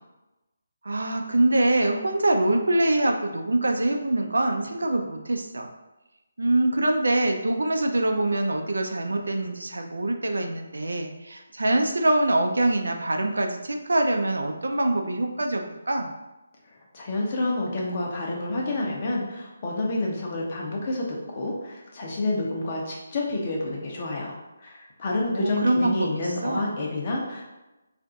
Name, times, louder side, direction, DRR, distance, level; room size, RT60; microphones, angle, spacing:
voice 1, 0.8-5.7 6.4-16.1 25.2-26.8, right 1 dB, 85° right, 3 dB, 0.4 m, -24 dB
voice 2, 16.9-24.3 24.6-27.4, left 2 dB, 40° left, -2 dB, 0.8 m, -29 dB
2.5 x 2.3 x 3.8 m, 1.0 s
figure-of-eight pair, 155°, 0 cm